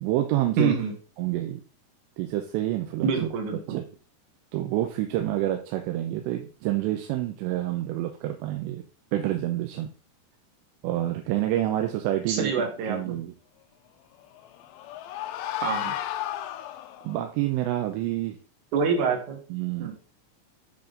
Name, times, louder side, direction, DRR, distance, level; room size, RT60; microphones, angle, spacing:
voice 1, 0.0-0.8 1.2-1.6 2.2-3.3 3.7-3.8 4.5-8.8 9.1-9.9 10.8-12.5 12.9-13.3 17.0-18.4 19.5-19.9, right 14 dB, 85° right, 4 dB, 2.9 m, -28 dB
voice 2, 0.6-0.9 3.0-3.6 12.3-13.2 15.6-15.9 18.7-19.4 19.8-19.9, right 5 dB, 65° right, 2 dB, 2.0 m, -26 dB
sound 1, 14.2-17.2, left 12 dB, 80° left, 2.8 m, -33 dB
9.4 x 3.6 x 3.7 m, 0.37 s
omnidirectional pair, 5.1 m